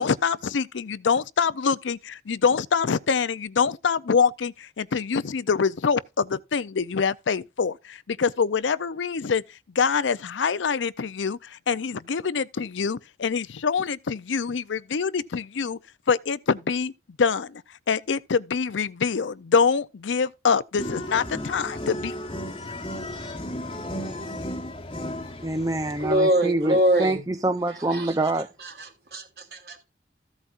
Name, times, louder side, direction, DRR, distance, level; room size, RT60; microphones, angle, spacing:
voice 1, 0.0-9.4 9.7-15.8 16.1-16.9 17.2-17.6 17.9-22.1, left 5 dB, 85° left, 0.5 m, -25 dB
sound 1, 20.8-26.2, left 1 dB, 30° left, 1.1 m, -34 dB
voice 2, 25.4-28.5, right 2 dB, 20° right, 0.5 m, -26 dB
voice 3, 26.0-27.2 27.9-28.1 28.8-29.2 29.5-29.8, right 1 dB, 60° right, 3.3 m, -23 dB
14.5 x 8.1 x 2.5 m
head